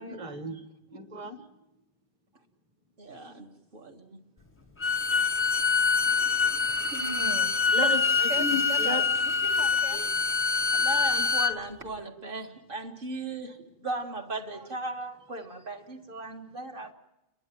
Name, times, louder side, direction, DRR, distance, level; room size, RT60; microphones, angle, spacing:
voice 1, 0.0-1.5 7.7-9.0 9.9-10.0, left 1 dB, 30° right, 5 dB, 1.5 m, -34 dB
voice 2, 3.0-3.5 3.7-4.2 6.0-6.2 6.8-6.9 10.7-16.9, right 2 dB, 50° right, 4 dB, 1.9 m, -37 dB
Bowed string instrument, 4.8-11.5, left 4 dB, 15° left, 0.6 m, -25 dB
voice 3, 6.9-7.5 8.3-10.0, right 3 dB, 85° right, 2 dB, 2.1 m, -38 dB
30.0 x 11.0 x 9.0 m, 0.93 s
omnidirectional pair, 1.2 m